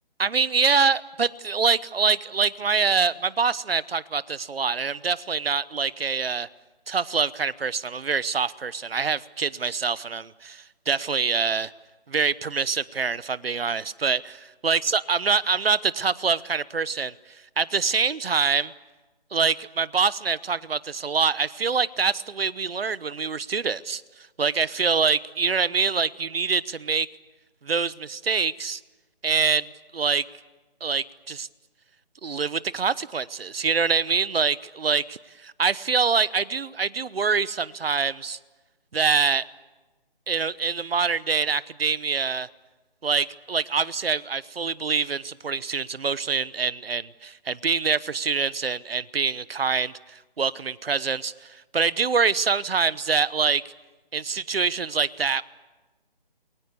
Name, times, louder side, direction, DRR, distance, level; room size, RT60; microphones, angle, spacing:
voice 1, 0.2-6.5 6.9-11.7 12.1-17.1 17.6-18.7 19.3-24.0 24.4-27.1 27.6-28.8 29.2-29.7 29.9-30.2 30.8-31.5 32.2-38.4 38.9-39.4 40.3-42.5 43.0-53.6 54.1-55.4, right 5 dB, 80° right, 19 dB, 1.0 m, -25 dB
29.0 x 22.5 x 6.9 m, 1.2 s
figure-of-eight pair, 165°, 29 cm